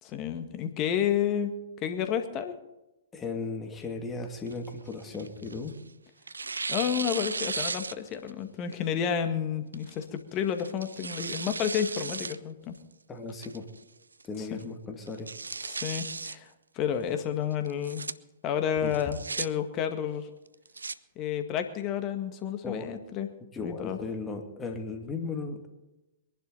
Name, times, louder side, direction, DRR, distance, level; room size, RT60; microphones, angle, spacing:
voice 1, 0.0-1.5 1.8-2.5 6.7-12.7 14.4-14.6 15.6-16.5 16.8-18.0 18.4-20.3 21.2-23.3 23.6-24.0, left 9 dB, 35° left, 7 dB, 1.9 m, -30 dB
voice 2, 3.1-5.8 13.1-13.7 14.2-15.3 18.8-19.0 22.6-22.9 23.5-25.7, left 3 dB, 15° left, 4 dB, 2.5 m, -36 dB
Tearing, 4.5-5.8 6.3-8.3 8.7-8.8 9.7-10.0 10.6-12.4 12.7-12.8 13.4-13.8 14.2-14.3 14.6-14.7 15.1-16.4 17.7-18.1 18.9-19.5 20.5-21.0, right 4 dB, 85° right, 0.5 m, -35 dB
22.5 x 11.0 x 4.1 m, 0.97 s
hypercardioid pair, 115°, 0 cm